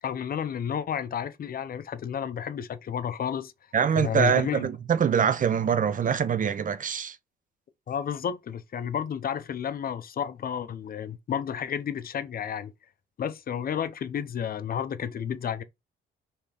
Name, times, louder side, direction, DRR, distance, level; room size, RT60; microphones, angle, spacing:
voice 1, 0.0-3.5 4.0-4.7 7.9-12.7 13.2-15.6, left 8 dB, 50° left, 0.6 m, -31 dB
voice 2, 3.7-7.2, right 7 dB, 40° right, 0.6 m, -24 dB
4.4 x 3.4 x 3.4 m
cardioid pair, 90°, 20 cm